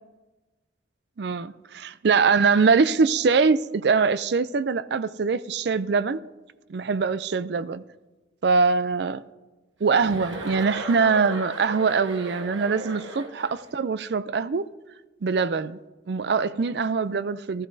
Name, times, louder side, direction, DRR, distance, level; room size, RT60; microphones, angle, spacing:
voice 1, 1.2-6.2 6.7-7.8 8.4-9.2 9.8-14.7 15.2-15.8 16.1-17.7, right 5 dB, 55° right, 0.4 m, -23 dB
Chuckle chortle, 9.9-13.7, right 2 dB, 85° right, 1.3 m, -36 dB
15.0 x 13.0 x 2.7 m
head